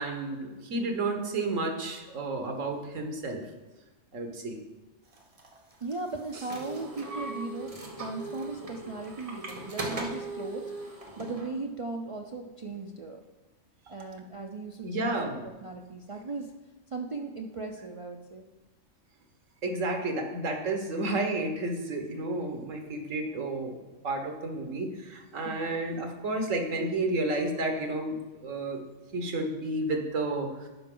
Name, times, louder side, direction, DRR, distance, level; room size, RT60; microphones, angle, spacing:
voice 1, 0.0-3.4 4.1-4.6 14.8-15.5 19.6-23.8 24.0-28.8 29.1-30.7, right 2 dB, 85° right, 4 dB, 1.5 m, -31 dB
sound 1, 5.1-11.5, right 2 dB, 30° right, 1.0 m, -39 dB
voice 2, 5.8-13.2 13.9-15.1 15.4-16.5 16.9-18.5 25.4-25.7, right 3 dB, 55° right, 1 dB, 0.3 m, -38 dB
11.5 x 5.0 x 3.8 m, 1.1 s
omnidirectional pair, 1.3 m